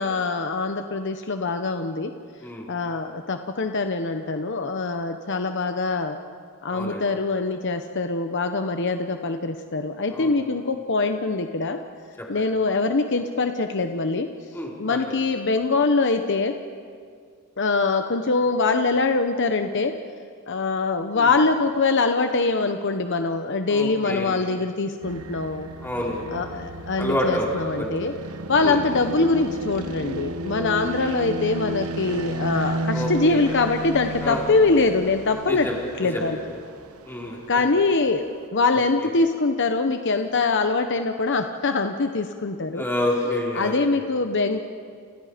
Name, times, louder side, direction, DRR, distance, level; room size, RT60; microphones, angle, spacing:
voice 1, 0.0-2.1 2.7-6.2 6.6-11.8 12.3-14.3 14.8-16.6 17.6-20.0 20.5-25.7 26.3-28.1 28.5-35.7 36.0-36.4 37.5-38.3 38.5-42.8 43.5-44.6, left 3 dB, 55° left, 7 dB, 1.0 m, -23 dB
voice 2, 6.7-7.0 10.1-10.4 12.2-12.4 14.5-15.0 21.1-21.3 23.7-24.4 25.8-26.3 27.0-27.9 28.6-28.8 32.9-33.4 34.2-34.4 35.5-36.3 37.1-37.4 42.7-44.0, left 1 dB, 10° left, -4 dB, 5.2 m, -28 dB
sound 1, 25.0-38.5, right 2 dB, 80° right, 1.1 m, -33 dB
30.0 x 29.0 x 5.2 m, 2.2 s
head